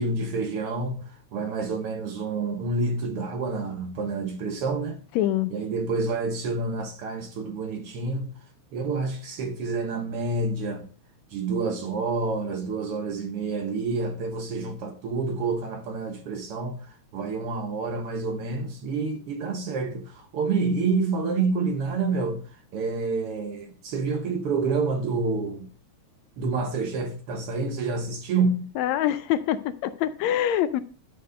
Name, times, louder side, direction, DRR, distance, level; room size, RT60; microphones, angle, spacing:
voice 1, 0.0-5.0 5.5-8.3 8.7-10.9 11.3-25.7 26.4-28.7, right 4 dB, 65° right, 1.6 m, -28 dB
voice 2, 5.2-5.5 28.8-30.8, left 11 dB, 80° left, 1.8 m, -25 dB
12.0 x 4.6 x 5.0 m
omnidirectional pair, 3.3 m